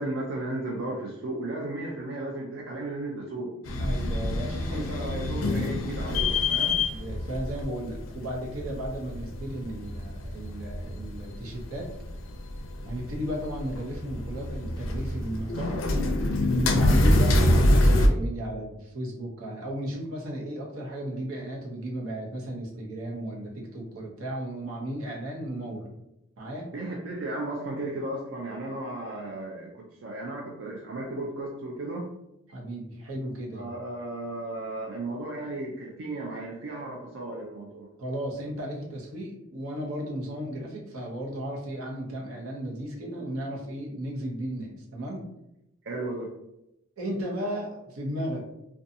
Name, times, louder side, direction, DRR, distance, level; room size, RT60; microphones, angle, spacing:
voice 1, 0.0-3.6 4.7-6.8 16.7-17.0 26.7-32.1 33.5-37.9 45.8-46.3, right 2 dB, 60° right, -2 dB, 0.4 m, -35 dB
sound 1, 3.6-18.1, left 1 dB, 65° left, 0.4 m, -26 dB
voice 2, 3.7-5.7 6.6-11.9 12.8-15.9 16.5-25.9 26.4-26.7 32.5-33.7 38.0-45.3 47.0-48.4, equal, 90° right, -2 dB, 0.8 m, -35 dB
2.6 x 2.3 x 2.6 m, 0.86 s
head